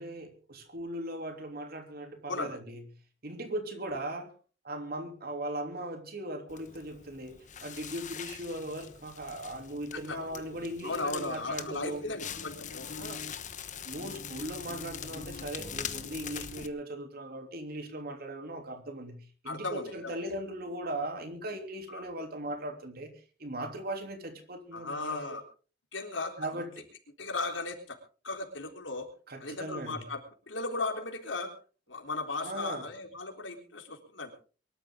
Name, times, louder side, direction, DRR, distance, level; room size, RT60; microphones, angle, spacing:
voice 1, 0.0-2.8 3.2-4.3 4.6-12.1 13.0-13.2 13.9-25.2 26.4-26.8 29.3-30.1 32.4-32.9, right 1 dB, 55° right, 6 dB, 3.2 m, -39 dB
Crackle, 6.5-16.7, left 7 dB, 40° left, 1.2 m, -42 dB
voice 2, 10.8-12.9 19.5-20.2 21.9-22.0 24.7-25.4 25.9-26.3 27.2-28.0 28.2-29.1 29.4-30.2 30.5-31.5 31.9-34.3, left 3 dB, 90° left, 3 dB, 3.7 m, -36 dB
23.5 x 12.5 x 3.8 m, 0.38 s
head